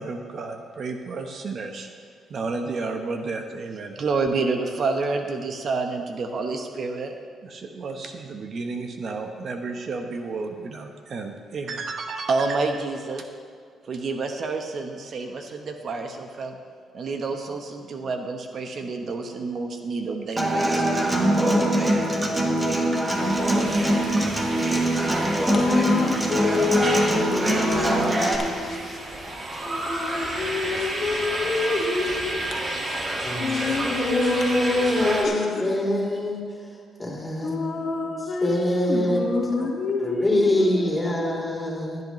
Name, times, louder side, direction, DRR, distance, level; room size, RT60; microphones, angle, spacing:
voice 1, 0.0-1.9 2.3-7.1 7.4-13.3 13.9-16.6 16.9-20.9, right 3 dB, 55° right, 5 dB, 0.9 m, -29 dB
Human voice / Acoustic guitar, 20.4-28.4, right 1 dB, 20° right, 1.4 m, -22 dB
sound 1, 23.1-35.3, right 1 dB, 40° right, 1.8 m, -31 dB
voice 2, 25.4-29.0 29.6-36.2 37.4-40.9, left 4 dB, 50° left, 0 dB, 1.6 m, -28 dB
voice 3, 33.2-36.4 37.0-37.6 38.4-39.3 39.6-39.7 40.0-42.0, left 1 dB, 10° left, -3 dB, 3.3 m, -24 dB
16.0 x 10.5 x 3.1 m, 2.1 s
cardioid pair, 95°, 0 cm